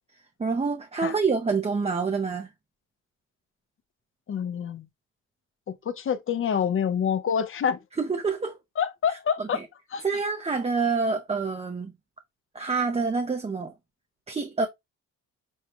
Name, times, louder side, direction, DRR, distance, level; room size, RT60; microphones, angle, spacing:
voice 1, 0.4-2.5 8.0-8.6 9.1-9.7 10.0-11.9 12.5-13.7 14.3-14.7, right 4 dB, 20° right, 0.6 m, -27 dB
voice 2, 4.3-4.9 5.9-7.8 8.8-9.6 9.9-10.0, left 7 dB, 45° left, 0.7 m, -26 dB
6.3 x 2.2 x 2.9 m
cardioid pair, 90°, 30 cm